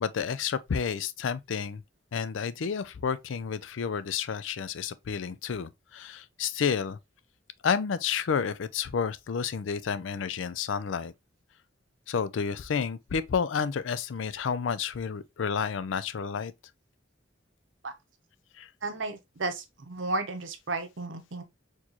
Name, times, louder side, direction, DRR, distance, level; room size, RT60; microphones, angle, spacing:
voice 1, 0.0-1.8 2.1-7.0 7.6-11.1 12.1-16.5 18.6-18.7, left 6 dB, 80° left, 0.4 m, -30 dB
voice 2, 18.8-21.4, right 3 dB, 75° right, 0.9 m, -33 dB
4.4 x 3.0 x 2.8 m
head